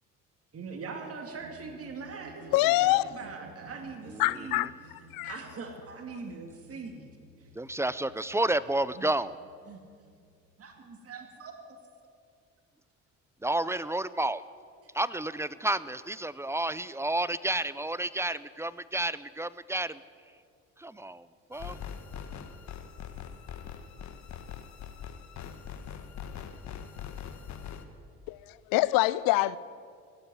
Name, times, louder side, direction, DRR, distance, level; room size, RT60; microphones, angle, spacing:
voice 1, 0.5-4.6 5.2-7.0 7.4-7.5 9.0-9.1 9.7-9.8 10.6-11.5, right 4 dB, 45° right, 2.2 m, -42 dB
sound 1, 1.4-11.5, right 2 dB, 70° right, 1.4 m, -54 dB
voice 2, 2.5-3.1 4.2-4.7 5.1-5.4 28.3-29.6, left 18 dB, 80° left, 0.5 m, -25 dB
voice 3, 4.1-4.6 7.5-9.4 13.4-14.4 14.9-20.0 20.8-21.8, right 1 dB, 10° right, 0.4 m, -31 dB
sound 2, 21.5-27.8, left 8 dB, 55° left, 1.3 m, -42 dB
16.5 x 7.9 x 9.7 m
supercardioid pair, 80°, 33 cm